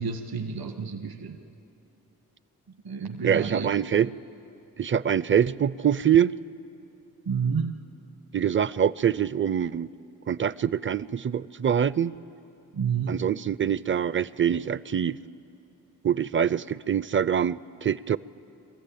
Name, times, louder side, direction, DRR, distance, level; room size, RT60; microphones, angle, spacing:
voice 1, 0.0-1.4 2.8-3.7 7.3-7.8 12.7-13.1, right 6 dB, 70° right, 7 dB, 1.3 m, -29 dB
voice 2, 3.2-4.1 4.8-6.3 8.3-9.9 10.3-12.1 13.1-15.2 16.0-18.2, right 8 dB, 35° right, 20 dB, 0.5 m, -24 dB
23.5 x 14.5 x 8.5 m, 2.8 s
supercardioid pair, 45°, 37 cm